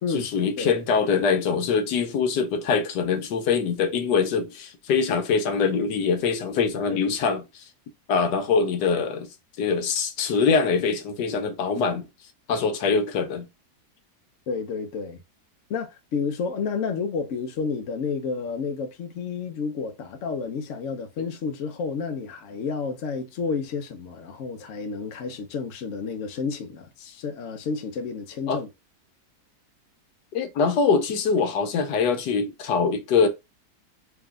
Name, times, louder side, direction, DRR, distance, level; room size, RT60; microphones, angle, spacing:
voice 1, 0.1-7.6 8.1-9.3 9.6-12.1 12.5-13.5 28.5-28.6 30.3-33.3, left 5 dB, 90° left, 1.4 m, -23 dB
voice 2, 14.5-15.2 15.7-28.7, left 5 dB, 55° left, 1.0 m, -30 dB
3.6 x 2.9 x 3.6 m
omnidirectional pair, 1.8 m